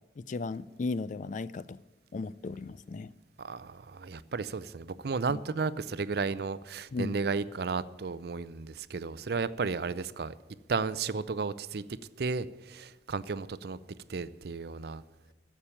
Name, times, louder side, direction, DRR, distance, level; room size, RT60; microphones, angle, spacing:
voice 1, 0.2-1.8 2.1-3.1 6.9-7.2, left 3 dB, 45° left, 0.4 m, -35 dB
voice 2, 3.4-10.3 10.7-13.8 14.1-15.0, right 4 dB, 60° right, 0.5 m, -33 dB
11.5 x 7.3 x 9.9 m
head